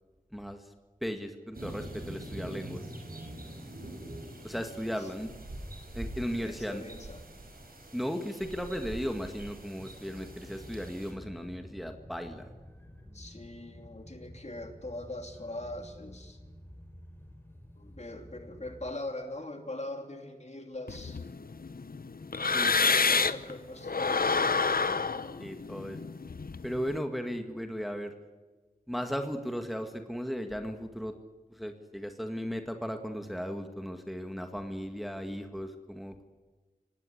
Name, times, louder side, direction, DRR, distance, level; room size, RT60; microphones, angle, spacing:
voice 1, 0.3-0.6 1.0-2.8 4.4-5.3 5.9-6.8 7.9-12.5 22.5-23.2 25.4-26.0 26.6-28.1 28.9-31.1 31.5-36.3, equal, ahead, 6 dB, 1.9 m, -36 dB
sound 1, 1.5-11.1, right 1 dB, 85° right, 5.4 m, -44 dB
voice 2, 6.4-7.2 13.1-16.4 17.8-21.2 22.6-24.5, left 1 dB, 50° left, 5 dB, 3.0 m, -41 dB
sound 2, 10.0-19.0, left 1 dB, 15° left, 5.2 m, -50 dB
sound 3, 20.9-23.5 23.8-26.9, left 4 dB, 85° left, 0.8 m, -28 dB
24.0 x 18.5 x 9.9 m, 1.3 s
wide cardioid pair, 55°, 15 cm